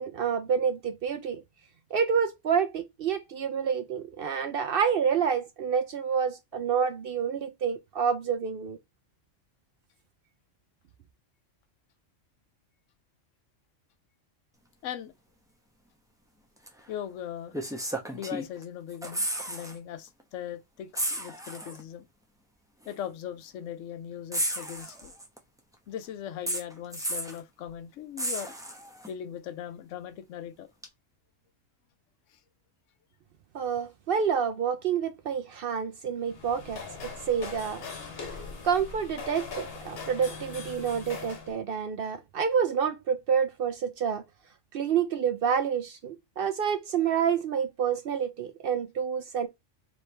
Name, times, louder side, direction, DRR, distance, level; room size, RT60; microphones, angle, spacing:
voice 1, 0.0-1.4 1.9-8.8 33.5-37.8 38.3-44.2 44.7-49.5, right 7 dB, 60° right, 0.6 m, -28 dB
voice 2, 14.8-15.1 16.9-17.6 18.1-22.1 22.9-25.1 25.9-28.5 29.1-30.7 32.3-32.4, left 9 dB, 80° left, 1.0 m, -39 dB
sound 1, 16.7-16.8 17.5-18.6 18.9-19.8 20.1-20.2 20.9-21.8 22.8-22.9 24.3-25.4 26.5-27.4 28.2-29.1 30.8-30.9, right 1 dB, 5° right, 0.7 m, -33 dB
sound 2, 36.2-41.5, left 5 dB, 55° left, 1.2 m, -41 dB
4.4 x 3.1 x 3.2 m
omnidirectional pair, 1.3 m